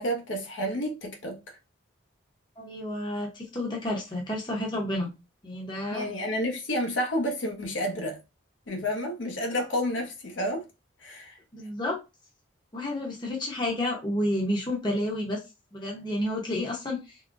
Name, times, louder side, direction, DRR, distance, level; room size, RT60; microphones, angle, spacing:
voice 1, 0.0-1.4 5.9-8.2 8.7-10.6 11.0-11.4, equal, 70° left, 0.8 m, -30 dB
voice 2, 2.6-5.1 5.4-6.1 11.5-12.0 12.7-15.4 15.7-17.2, left 1 dB, 25° left, 0.8 m, -30 dB
3.7 x 2.1 x 2.4 m
head